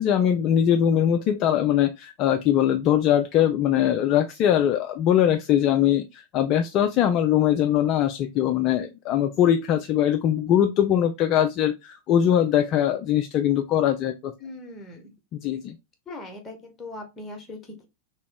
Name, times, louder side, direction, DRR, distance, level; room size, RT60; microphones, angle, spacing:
voice 1, 0.0-14.3 15.3-15.7, left 10 dB, 35° left, 0.3 m, -21 dB
voice 2, 14.4-15.1 16.1-17.9, left 2 dB, 15° left, 1.1 m, -40 dB
3.0 x 2.9 x 3.4 m
figure-of-eight pair, 90°, 0 cm